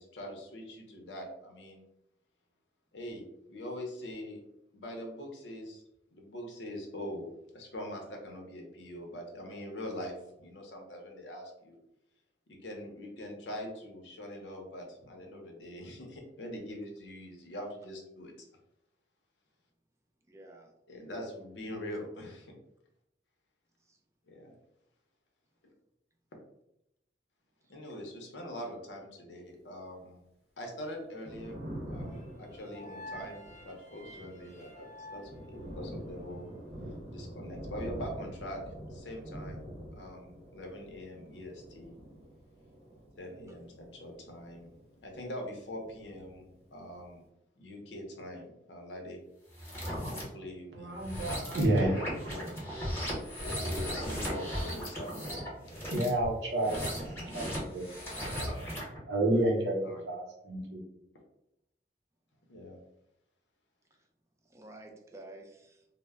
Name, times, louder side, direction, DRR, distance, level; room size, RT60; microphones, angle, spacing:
voice 1, 0.0-1.8 2.9-4.4 4.7-5.8 6.1-11.8 12.5-18.5 20.9-22.5 24.3-24.5 27.7-30.2 30.6-31.6 31.9-36.5 37.1-38.6 38.9-41.9 43.2-44.7 45.0-47.3 47.6-49.2 50.1-50.9 52.3-52.5 53.4-55.7 58.2-58.5 59.8-60.0 62.5-62.8, equal, 80° left, 2 dB, 0.6 m, -43 dB
voice 2, 20.3-20.7 23.8-24.0 63.9-64.0 64.4-65.9, right 2 dB, 15° right, 2 dB, 0.4 m, -51 dB
Thunder, 31.0-45.5 45.7-47.0, equal, 35° right, 0.7 m, -46 dB
sound 1, 32.1-36.3, equal, 40° left, 0.6 m, -50 dB
sound 2, 49.5-50.2 50.9-59.0, equal, 15° left, 0.9 m, -37 dB
voice 3, 50.7-52.4 55.7-56.8 57.1-57.9 58.5-58.7 59.1-60.8, right 1 dB, 75° right, 0 dB, 0.7 m, -30 dB
2.1 x 2.1 x 3.4 m, 0.83 s
head